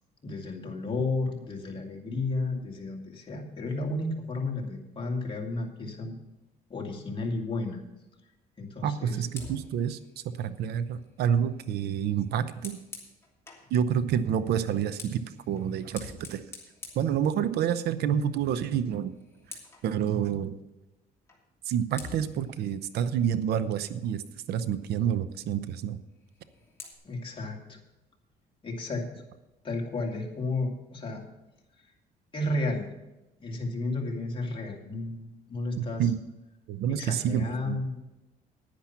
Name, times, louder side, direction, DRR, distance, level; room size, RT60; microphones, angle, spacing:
voice 1, 0.2-6.2 6.7-7.8 8.6-9.1 27.0-27.8 28.6-29.0 29.6-31.2 32.3-32.9 33.4-36.1 37.0-38.0, left 2 dB, 30° left, 1 dB, 2.4 m, -32 dB
voice 2, 8.8-10.0 10.4-12.8 13.7-15.2 15.5-16.4 17.0-19.1 19.8-20.6 21.7-24.2 24.5-26.0 35.8-36.1 36.7-37.8, right 8 dB, 70° right, 13 dB, 0.7 m, -28 dB
Fire, 9.3-13.7 14.6-17.9 18.2-18.5 18.8-19.9 21.3-21.4 21.9-24.3 26.2-26.9, left 3 dB, 15° left, 2.8 m, -48 dB
10.5 x 10.0 x 5.9 m, 0.99 s
cardioid pair, 110°, 17 cm